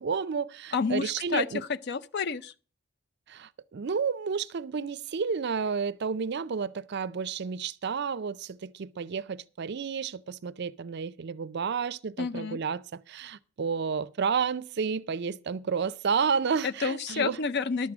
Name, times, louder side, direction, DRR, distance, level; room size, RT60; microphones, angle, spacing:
voice 1, 0.0-1.6 3.3-17.4, right 6 dB, 50° right, 0.4 m, -31 dB
voice 2, 0.7-2.5 12.2-12.6 16.6-17.9, left 5 dB, 50° left, 0.5 m, -30 dB
11.5 x 7.5 x 6.0 m
head